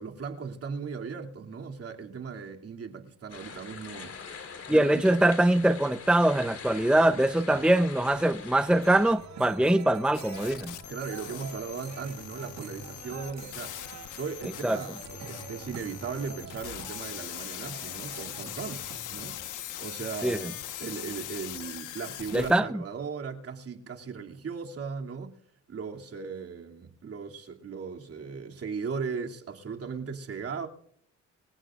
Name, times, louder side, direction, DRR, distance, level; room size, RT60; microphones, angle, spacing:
voice 1, 0.0-4.2 4.7-5.0 7.1-7.2 7.5-7.7 10.9-13.8 14.2-19.4 19.8-25.4 25.7-30.7, right 5 dB, 50° right, 2.9 m, -37 dB
sound 1, 3.3-9.1, left 5 dB, 55° left, 4.2 m, -44 dB
voice 2, 4.7-10.7 14.6-14.8 20.2-20.4 22.3-22.7, right 1 dB, 5° right, 0.8 m, -23 dB
sound 2, 8.7-19.5, right 7 dB, 70° right, 6.7 m, -46 dB
sound 3, 10.1-22.5, left 12 dB, 85° left, 1.3 m, -41 dB
25.5 x 15.5 x 2.5 m
cardioid pair, 90°, 30 cm